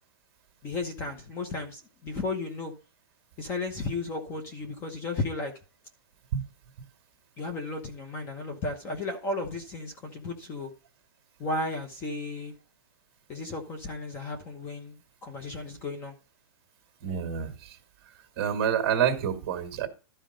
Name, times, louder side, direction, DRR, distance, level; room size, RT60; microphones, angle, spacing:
voice 1, 0.6-2.7 3.4-5.5 7.4-10.7 11.4-12.5 13.3-16.1, left 2 dB, 20° left, 1.0 m, -34 dB
voice 2, 17.0-17.5 18.4-19.9, right 8 dB, 35° right, 1.9 m, -27 dB
12.5 x 4.5 x 5.2 m
hypercardioid pair, 170°, 13 cm